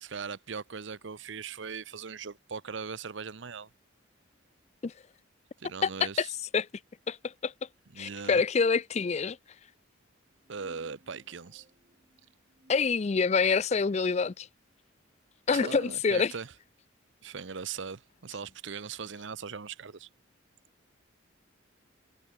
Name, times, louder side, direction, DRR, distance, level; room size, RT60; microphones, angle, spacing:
voice 1, 0.0-3.7 5.6-6.3 7.9-8.4 10.5-11.7 15.5-16.5 17.2-20.1, right 5 dB, 65° right, 0.8 m, -39 dB
voice 2, 7.1-7.5 8.0-9.4 12.7-14.5 15.5-16.3, left 5 dB, 35° left, 0.4 m, -26 dB
sound 1, 10.3-13.7, right 1 dB, 35° right, 3.2 m, -62 dB
head